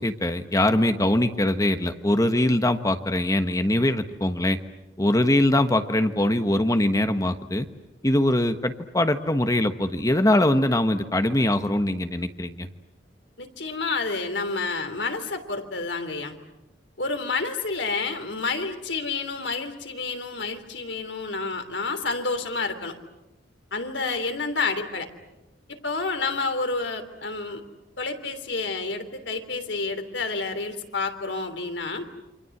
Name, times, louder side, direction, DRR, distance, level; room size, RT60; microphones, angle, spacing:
voice 1, 0.0-4.6 5.0-7.7 8.0-12.7, left 1 dB, 20° left, 8 dB, 1.3 m, -22 dB
voice 2, 13.4-16.4 17.0-22.9 23.7-25.1 25.7-27.6 28.0-32.1, left 3 dB, 80° left, 7 dB, 3.3 m, -29 dB
29.0 x 26.0 x 7.9 m, 0.99 s
head